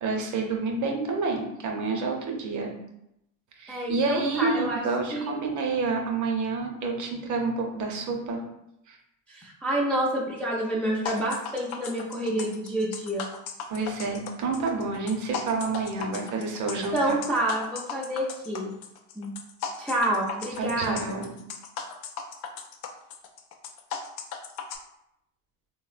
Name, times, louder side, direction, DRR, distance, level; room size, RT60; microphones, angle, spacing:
voice 1, 0.0-2.7 3.6-8.4 8.9-9.0 13.7-17.1 20.6-21.3, right 4 dB, 40° right, 1 dB, 0.7 m, -29 dB
voice 2, 3.7-4.8 5.1-5.3 9.3-13.3 16.9-18.7 19.2-19.3 19.8-21.3, right 1 dB, 5° left, -5 dB, 0.4 m, -28 dB
sound 1, 11.1-24.8, left 6 dB, 85° left, 0.5 m, -37 dB
3.4 x 2.1 x 2.4 m, 0.82 s
supercardioid pair, 100°, 44 cm